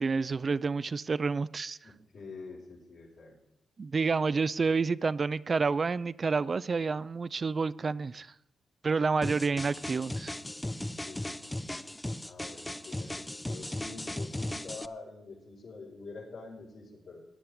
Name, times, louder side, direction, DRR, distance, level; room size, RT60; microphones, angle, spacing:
voice 1, 0.0-1.8 3.8-8.3 8.8-10.3, right 4 dB, 45° right, 0.4 m, -29 dB
voice 2, 1.8-3.4 11.1-11.6 12.2-17.2, left 3 dB, 75° left, 4.4 m, -46 dB
sound 1, 9.2-14.9, left 1 dB, 15° left, 0.6 m, -37 dB
19.0 x 10.0 x 3.5 m
supercardioid pair, 55°, 0 cm